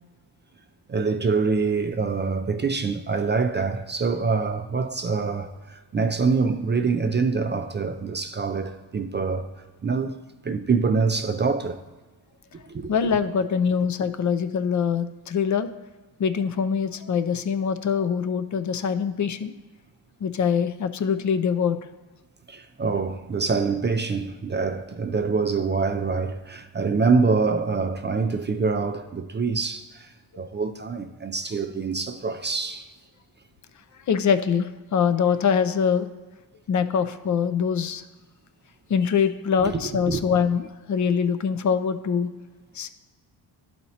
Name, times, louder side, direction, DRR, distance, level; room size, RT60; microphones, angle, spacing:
voice 1, 0.9-9.5 9.8-10.2 10.4-11.8 12.7-12.9 22.5-30.1 30.4-32.9 39.6-39.7 40.1-40.2, right 4 dB, 25° right, 0.3 m, -25 dB
voice 2, 12.9-15.7 16.2-19.5 20.2-21.8 34.1-36.1 36.7-38.0 38.9-42.3 42.7-42.9, left 7 dB, 40° left, 0.5 m, -23 dB
11.5 x 4.2 x 2.8 m
cardioid pair, 80°, 45 cm